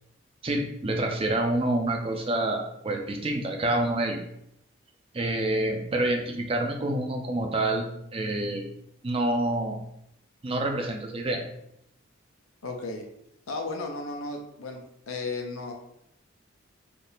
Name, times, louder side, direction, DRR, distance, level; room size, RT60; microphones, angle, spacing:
voice 1, 0.4-4.2 5.1-8.6 9.0-9.8 10.4-11.4, right 1 dB, 25° right, 3 dB, 0.4 m, -27 dB
voice 2, 12.6-13.1 13.5-14.8 15.1-15.7, left 3 dB, 85° left, 2 dB, 0.6 m, -34 dB
3.5 x 2.8 x 2.7 m, 0.75 s
head